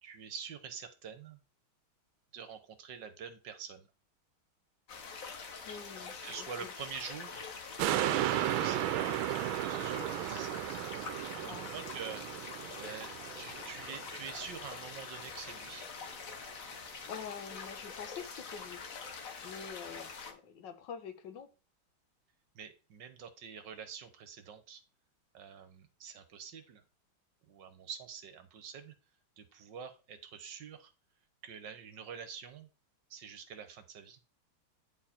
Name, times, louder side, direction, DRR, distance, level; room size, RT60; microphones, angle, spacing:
voice 1, 0.0-1.4 2.3-3.9 6.2-7.5 8.0-9.2 9.6-10.6 11.3-12.3 12.5-13.1 13.4-15.9 22.5-24.8 25.3-26.8 27.4-28.9 29.4-30.9 31.4-32.7 33.1-34.2, right 7 dB, 65° right, 1.6 m, -46 dB
sound 1, 4.9-20.3, left 5 dB, 45° left, 1.4 m, -45 dB
voice 2, 5.7-6.7 11.4-11.8 17.1-19.0 19.4-21.5, left 7 dB, 65° left, 1.8 m, -46 dB
sound 2, 7.8-14.4 14.9-15.0, right 13 dB, 90° right, 1.4 m, -34 dB
9.5 x 4.8 x 4.3 m
omnidirectional pair, 2.2 m